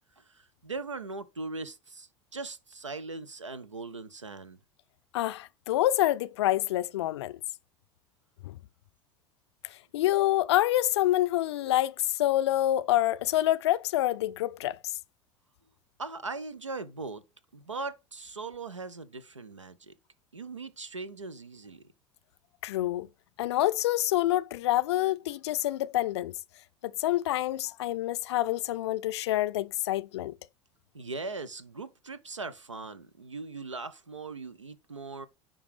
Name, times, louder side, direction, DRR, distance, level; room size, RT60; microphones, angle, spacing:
voice 1, 0.2-4.6 16.0-17.2 17.5-19.9 20.3-21.8 30.9-35.3, right 3 dB, 85° right, 0.7 m, -40 dB
voice 2, 5.1-7.4 8.4-8.6 9.6-14.8 22.6-23.1 23.4-26.3 26.8-30.3, left 14 dB, 65° left, 0.4 m, -27 dB
9.9 x 3.6 x 4.9 m
figure-of-eight pair, 75°, 15 cm